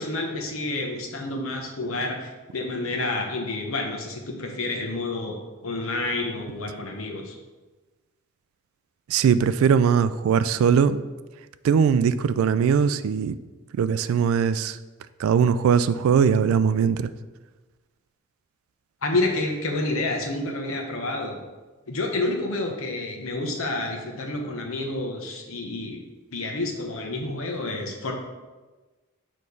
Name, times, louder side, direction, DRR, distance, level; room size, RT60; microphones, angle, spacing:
voice 1, 0.0-5.3 5.6-7.3 19.0-21.4 21.9-26.0 26.3-28.1, left 2 dB, 75° left, 2 dB, 1.0 m, -29 dB
voice 2, 9.1-11.0 11.6-13.4 13.7-14.8 15.2-17.1, right 7 dB, 75° right, 13 dB, 0.3 m, -20 dB
6.6 x 3.2 x 5.3 m, 1.2 s
head